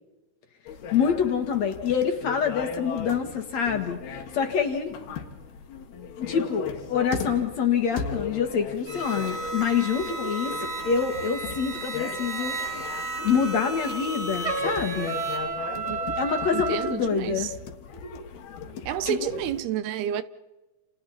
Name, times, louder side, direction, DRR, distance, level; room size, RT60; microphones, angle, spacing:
sound 1, 0.7-19.6, left 6 dB, 85° left, 3.7 m, -38 dB
voice 1, 0.9-5.0 6.2-10.5 10.8-12.5 13.2-15.1 16.2-17.5 19.1-19.3, left 7 dB, 50° left, 2.6 m, -26 dB
sound 2, 8.9-15.4, right 2 dB, 60° right, 6.9 m, -34 dB
Trumpet, 14.4-17.0, right 4 dB, 45° right, 1.3 m, -30 dB
voice 2, 15.7-16.1 16.5-17.5 18.9-20.2, right 10 dB, 85° right, 2.9 m, -30 dB
29.5 x 28.5 x 4.3 m
omnidirectional pair, 4.5 m